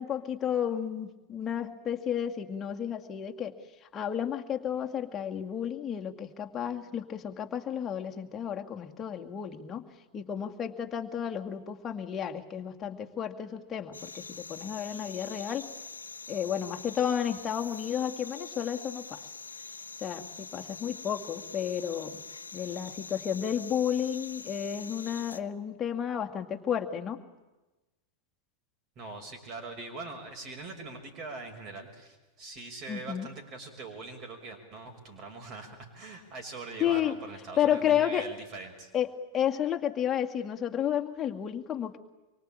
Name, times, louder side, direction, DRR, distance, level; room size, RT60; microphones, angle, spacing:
voice 1, 0.0-3.5 3.9-9.9 10.1-15.7 16.3-19.2 20.0-22.2 22.5-27.2 32.9-33.3 36.8-37.2 37.6-38.3 38.9-39.1 39.3-42.0, left 9 dB, 25° left, 3 dB, 2.2 m, -32 dB
sound 1, 13.9-25.4, left 4 dB, 80° left, 0.9 m, -44 dB
voice 2, 29.0-38.9, right 3 dB, 35° right, 3 dB, 6.0 m, -42 dB
25.5 x 24.0 x 8.9 m, 1.1 s
figure-of-eight pair, 90°, 0 cm